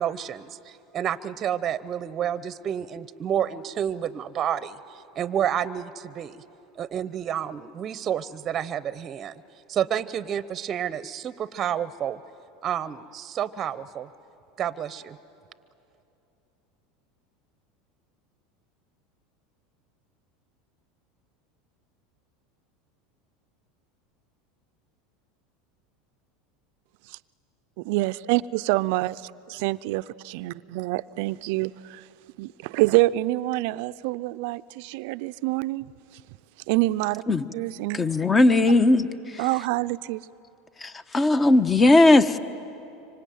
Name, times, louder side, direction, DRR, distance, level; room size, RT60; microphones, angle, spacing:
voice 1, 0.0-6.4 6.8-9.4 9.7-12.2 12.6-14.1 14.6-15.2, right 9 dB, 35° right, 0.8 m, -29 dB
voice 2, 27.8-29.1 29.6-32.0 32.4-35.9 36.7-37.2 37.5-38.0 39.4-40.2, right 19 dB, 65° right, 0.5 m, -26 dB
voice 3, 37.9-39.1 39.3-39.4 40.8-42.4, left 2 dB, 20° left, 1.2 m, -18 dB
25.0 x 25.0 x 9.4 m
hypercardioid pair, 95°, 0 cm